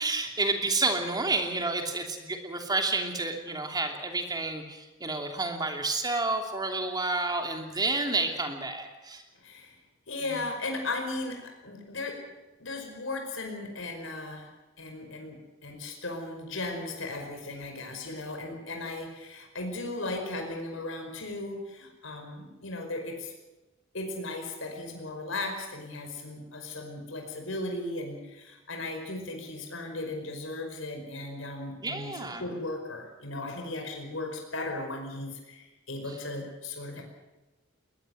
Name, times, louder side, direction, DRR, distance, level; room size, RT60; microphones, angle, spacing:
voice 1, 0.0-9.2 31.8-32.4, right 3 dB, 20° right, 4 dB, 3.0 m, -30 dB
voice 2, 9.4-9.8 10.1-12.3 12.6-14.5 14.8-23.3 23.9-37.0, left 2 dB, 75° left, 3 dB, 5.2 m, -36 dB
21.0 x 20.5 x 7.9 m, 1.1 s
head